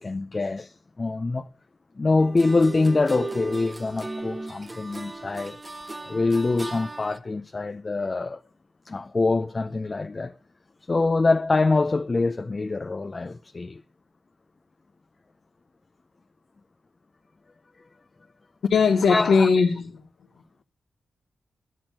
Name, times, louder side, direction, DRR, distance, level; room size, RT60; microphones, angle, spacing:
voice 1, 0.0-1.5 2.0-5.6 6.0-8.4 8.9-10.4 10.9-13.8 19.1-19.5, left 3 dB, 30° left, 0.5 m, -24 dB
sound 1, 2.2-7.2, right 3 dB, 20° right, 1.0 m, -37 dB
voice 2, 18.7-19.9, left 5 dB, 85° left, 1.2 m, -19 dB
11.0 x 7.5 x 8.9 m
wide cardioid pair, 130°, 0 cm